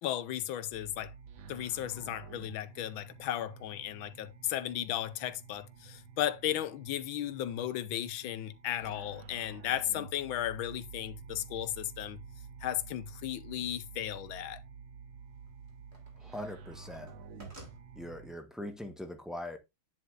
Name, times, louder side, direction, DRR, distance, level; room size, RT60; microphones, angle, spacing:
voice 1, 0.0-1.1 1.5-12.2 12.6-14.6, left 12 dB, 80° left, 1.5 m, -35 dB
sound 1, 0.7-18.4, right 5 dB, 75° right, 1.8 m, -50 dB
sound 2, 15.0-16.3 16.6-17.8, right 1 dB, 30° right, 2.4 m, -53 dB
voice 2, 16.2-17.1 17.9-19.6, left 1 dB, ahead, 0.7 m, -41 dB
9.4 x 8.0 x 2.5 m
omnidirectional pair, 2.2 m